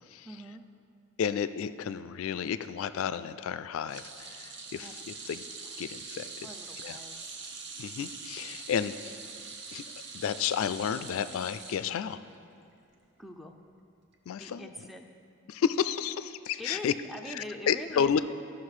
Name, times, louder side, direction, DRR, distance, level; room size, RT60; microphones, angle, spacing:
voice 1, 0.2-0.6 4.8-5.3 6.4-7.4 13.2-13.6 14.3-15.0 16.6-18.2, left 1 dB, ahead, 2 dB, 0.4 m, -43 dB
voice 2, 1.2-5.4 5.8-6.3 6.8-7.0 7.8-9.2 9.7-9.8 10.1-12.2 14.3-14.7 15.5-16.9 17.3-18.2, left 7 dB, 70° left, 13 dB, 0.3 m, -31 dB
sound 1, 3.9-12.4 12.7-12.9 14.1-14.2, right 4 dB, 50° right, 0.8 m, -44 dB
13.5 x 5.9 x 4.8 m, 2.5 s
head